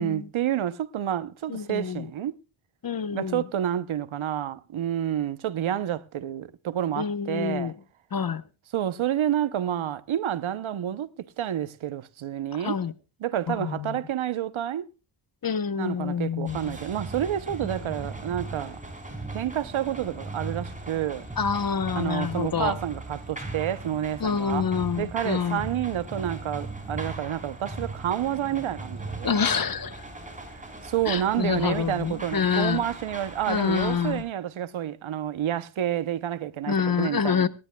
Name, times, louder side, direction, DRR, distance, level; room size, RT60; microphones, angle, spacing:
voice 1, 0.0-2.4 3.1-7.7 8.7-12.8 13.2-14.9 15.8-18.8 19.3-21.3 21.9-29.4 30.5-37.5, right 11 dB, 80° right, 0.8 m, -29 dB
voice 2, 1.5-2.1 2.8-3.4 7.0-7.7 8.1-8.4 12.6-12.9 13.5-14.0 15.4-16.7 21.4-22.8 24.2-25.6 29.2-30.0 31.1-32.8 33.5-34.2 36.7-37.5, left 6 dB, 45° left, 1.0 m, -27 dB
sound 1, 16.5-34.2, right 2 dB, 15° right, 4.8 m, -38 dB
25.5 x 10.5 x 2.3 m
cardioid pair, 60°, 47 cm